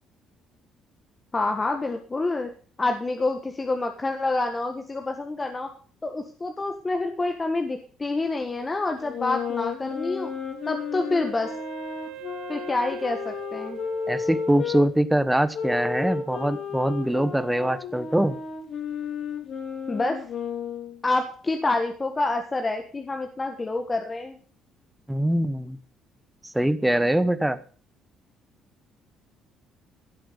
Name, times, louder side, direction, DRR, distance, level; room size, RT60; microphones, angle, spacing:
voice 1, 1.3-2.5 2.8-5.7 6.0-10.3 10.6-11.5 12.5-13.8 19.9-20.2 21.0-24.4, left 2 dB, 20° left, 5 dB, 1.5 m, -27 dB
sound 1, 9.0-14.8 15.5-21.0, left 6 dB, 50° left, 3.7 m, -33 dB
Wind instrument woodwind instrument, 10.2-15.1, right 10 dB, 85° right, 1.0 m, -42 dB
voice 2, 14.1-18.4 25.1-25.8 26.5-27.6, right 1 dB, 5° right, 13 dB, 1.1 m, -23 dB
16.0 x 7.9 x 6.8 m, 0.42 s
cardioid pair, 135°, 0 cm